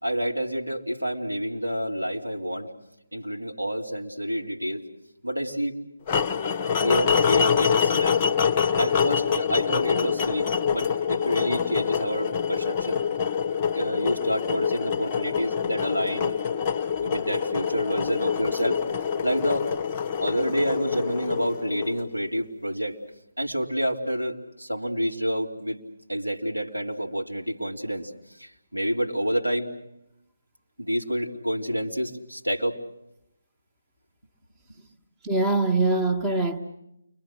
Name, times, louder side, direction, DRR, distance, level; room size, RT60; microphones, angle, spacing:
voice 1, 0.0-2.7 3.1-4.8 5.2-5.8 6.8-8.2 8.8-13.0 13.7-16.4 17.0-18.8 19.2-19.7 20.2-23.0 23.4-25.8 26.1-28.1 28.4-29.7 30.8-32.8 34.7-34.8, equal, 90° right, 0 dB, 3.3 m, -28 dB
sound 1, 6.1-22.2, left 7 dB, 20° left, 0.9 m, -25 dB
voice 2, 35.2-36.6, right 2 dB, 10° right, 8 dB, 1.3 m, -23 dB
29.5 x 23.5 x 6.5 m, 0.83 s
figure-of-eight pair, 145°, 0 cm